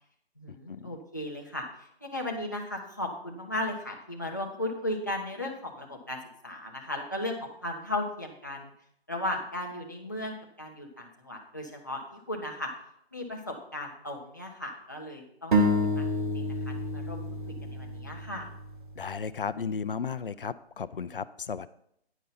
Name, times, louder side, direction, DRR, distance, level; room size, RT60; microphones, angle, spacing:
voice 1, 0.4-1.6 2.0-8.7 9.1-12.7 13.1-15.6 15.8-18.5, left 1 dB, 20° left, -2 dB, 0.7 m, -36 dB
sound 1, 15.5-19.1, equal, 50° right, 1.3 m, -29 dB
voice 2, 19.0-21.7, left 6 dB, 55° left, 15 dB, 0.5 m, -34 dB
10.0 x 5.3 x 5.5 m, 0.72 s
hypercardioid pair, 180°, 32 cm